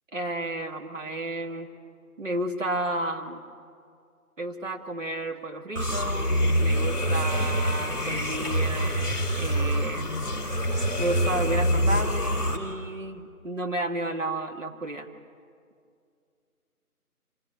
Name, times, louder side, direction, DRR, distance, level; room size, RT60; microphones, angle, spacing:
voice 1, 0.1-1.7 2.2-3.4 4.4-6.3 6.6-10.1 11.0-15.1, right 1 dB, 55° right, 3 dB, 2.0 m, -32 dB
sound 1, 5.7-12.6, equal, 5° right, 1.6 m, -25 dB
26.0 x 18.0 x 8.9 m, 2.3 s
figure-of-eight pair, 165°, 45 cm